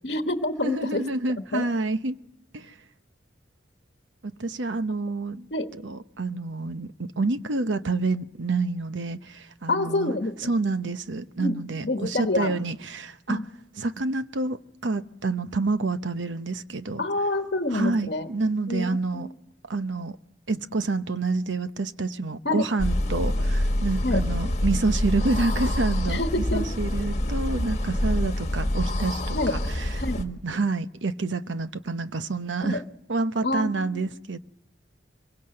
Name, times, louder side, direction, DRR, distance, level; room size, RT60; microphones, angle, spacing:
voice 1, 0.0-1.0 1.5-1.6 5.5-5.7 9.7-10.5 11.4-11.6 11.8-12.6 13.3-13.5 17.0-18.3 18.7-19.3 22.4-22.6 24.0-24.2 26.1-26.7 29.3-29.5 30.0-30.2 32.6-32.8 33.4-34.1, left 2 dB, 60° left, 1.2 m, -27 dB
voice 2, 0.6-2.2 2.5-2.7 4.2-5.5 5.8-10.1 10.4-13.4 13.8-17.0 17.7-19.3 19.7-20.2 20.5-26.2 26.5-32.8 33.1-34.4, right 3 dB, 85° right, 0.9 m, -28 dB
sound 1, 22.8-30.2, left 1 dB, 40° left, 1.5 m, -26 dB
24.5 x 23.0 x 7.7 m
head